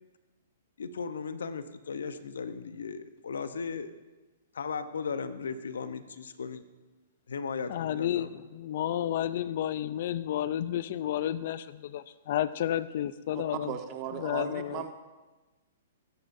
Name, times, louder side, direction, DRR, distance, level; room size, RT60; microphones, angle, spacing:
voice 1, 0.8-3.9 4.5-6.6 7.3-8.3, left 5 dB, 85° left, 11 dB, 0.8 m, -36 dB
voice 2, 7.7-13.8 14.2-14.8, left 11 dB, 55° left, 16 dB, 0.4 m, -31 dB
voice 3, 13.3-14.9, right 10 dB, 35° right, 6 dB, 1.2 m, -37 dB
20.5 x 9.7 x 2.6 m, 1.2 s
hypercardioid pair, 135°, 0 cm